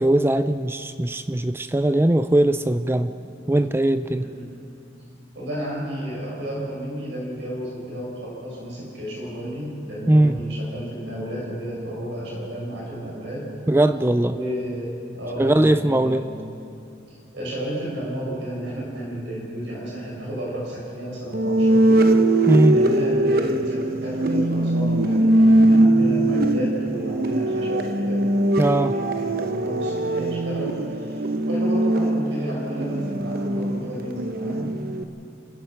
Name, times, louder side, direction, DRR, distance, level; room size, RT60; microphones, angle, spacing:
voice 1, 0.0-3.1 3.5-4.3 10.1-10.4 13.7-14.3 15.4-16.3 22.5-22.8 28.6-28.9, right 1 dB, 10° right, 11 dB, 0.4 m, -19 dB
voice 2, 4.2-4.5 5.3-13.5 14.3-16.4 17.1-34.8, right 1 dB, 65° right, -4 dB, 6.1 m, -32 dB
sound 1, 21.3-35.0, right 1 dB, 50° right, 1.0 m, -21 dB
29.0 x 15.5 x 5.8 m, 2.5 s
head